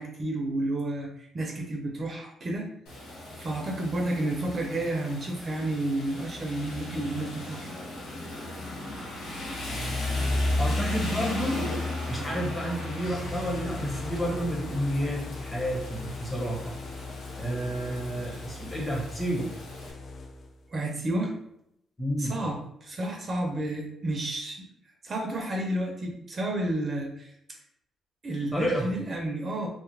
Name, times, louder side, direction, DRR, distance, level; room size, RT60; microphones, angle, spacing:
voice 1, 0.0-2.7 3.4-7.7 20.7-21.3 22.2-24.7 25.0-27.3 28.2-29.7, right 1 dB, 40° right, 1 dB, 0.6 m, -31 dB
Rain, 2.9-19.9, left 2 dB, 90° left, 0.9 m, -35 dB
voice 2, 10.3-11.6 12.1-16.7 17.3-19.5 22.0-22.3 28.5-28.9, equal, 20° left, -3 dB, 1.3 m, -30 dB
sound 1, 13.0-20.7, left 3 dB, 50° left, 0.4 m, -39 dB
2.7 x 2.3 x 3.3 m, 0.77 s
cardioid pair, 90°, 0 cm